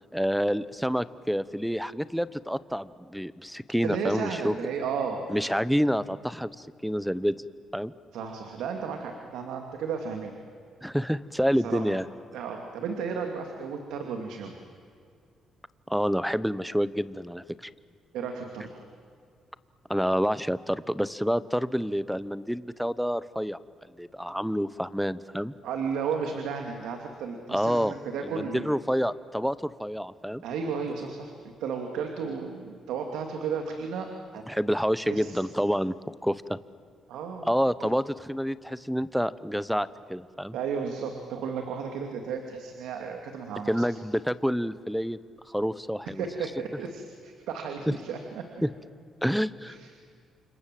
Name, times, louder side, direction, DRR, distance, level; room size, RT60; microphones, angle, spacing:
voice 1, 0.1-4.6 5.3-7.3 7.7-7.9 10.8-12.1 15.9-17.7 19.9-23.6 24.0-25.5 27.5-27.9 28.2-30.4 34.5-36.0 36.2-36.6 37.5-40.6 43.7-45.2 45.5-46.3 47.9-48.0 48.6-48.7 49.2-49.8, equal, ahead, 16 dB, 1.0 m, -28 dB
voice 2, 3.8-5.5 8.1-10.3 11.6-12.0 12.3-14.6 18.1-18.8 25.6-28.7 30.4-31.3 31.6-34.1 34.3-34.4 35.0-35.4 37.1-37.5 37.8-37.9 40.5-43.9 46.1-48.5 49.7-49.9, right 6 dB, 85° right, 4 dB, 2.6 m, -33 dB
29.5 x 26.0 x 7.7 m, 2.3 s
cardioid pair, 90°, 0 cm